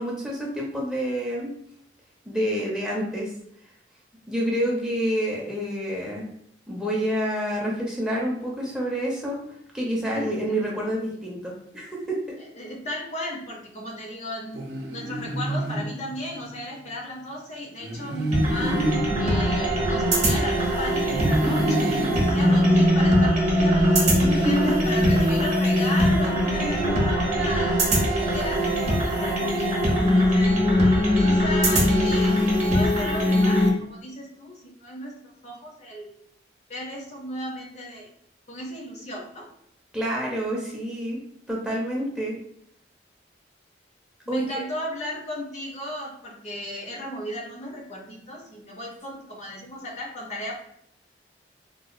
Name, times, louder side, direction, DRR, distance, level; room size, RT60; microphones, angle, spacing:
voice 1, 0.0-1.5 2.3-3.3 4.3-6.3 6.7-9.4 9.7-12.4 24.2-24.9 26.5-26.9 39.9-41.2 41.5-42.3 44.3-44.6, equal, 5° right, -4 dB, 0.6 m, -28 dB
voice 2, 10.1-10.7 12.6-27.8 28.2-30.6 31.2-35.1 35.4-36.2 36.7-38.1 38.5-39.5 44.3-50.5, left 1 dB, 35° left, -1 dB, 0.6 m, -35 dB
sound 1, 14.5-16.6 17.8-20.5 21.0-23.3, right 1 dB, 70° right, 0.6 m, -29 dB
sound 2, 18.3-33.7, equal, 40° right, 0.8 m, -21 dB
3.7 x 2.3 x 2.5 m, 0.73 s
head